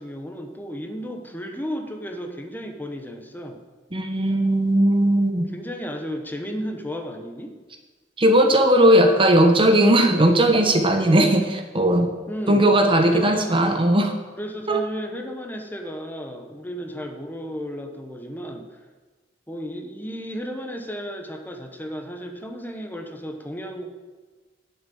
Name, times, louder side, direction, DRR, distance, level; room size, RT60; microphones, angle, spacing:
voice 1, 0.0-3.6 5.5-7.5 12.3-12.7 13.1-13.6 14.4-18.8 19.5-23.9, equal, 10° left, 4 dB, 1.1 m, -33 dB
voice 2, 3.9-5.5 8.2-12.1 12.5-14.1 14.7-14.8, right 1 dB, 30° right, 6 dB, 1.1 m, -18 dB
10.5 x 6.8 x 8.6 m, 1.3 s
head